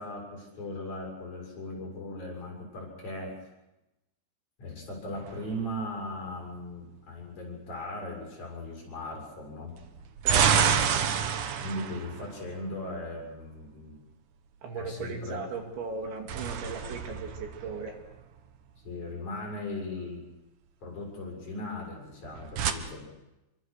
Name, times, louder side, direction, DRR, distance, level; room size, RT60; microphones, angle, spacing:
voice 1, 0.0-3.3 4.6-9.7 10.9-11.0 11.6-14.0 14.8-15.4 18.8-20.2 20.8-23.1, left 1 dB, 35° left, -1 dB, 8.3 m, -38 dB
sound 1, 5.1-6.2 9.8-13.1 15.9-18.4 22.1-22.7, right 7 dB, 85° right, 1.8 m, -29 dB
voice 2, 10.2-10.7 14.6-18.0, right 4 dB, 65° right, 3 dB, 4.6 m, -37 dB
28.0 x 24.0 x 6.6 m, 0.98 s
omnidirectional pair, 5.8 m